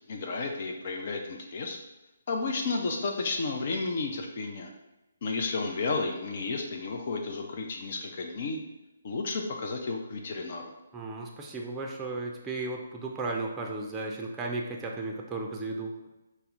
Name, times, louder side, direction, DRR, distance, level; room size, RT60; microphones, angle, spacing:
voice 1, 0.1-1.8 2.3-4.7 5.2-8.6 9.0-10.7, left 3 dB, 45° left, 2 dB, 0.5 m, -32 dB
voice 2, 10.9-16.0, right 3 dB, 10° right, 0 dB, 0.5 m, -35 dB
5.5 x 2.1 x 3.6 m, 1.0 s
figure-of-eight pair, 140°, 0 cm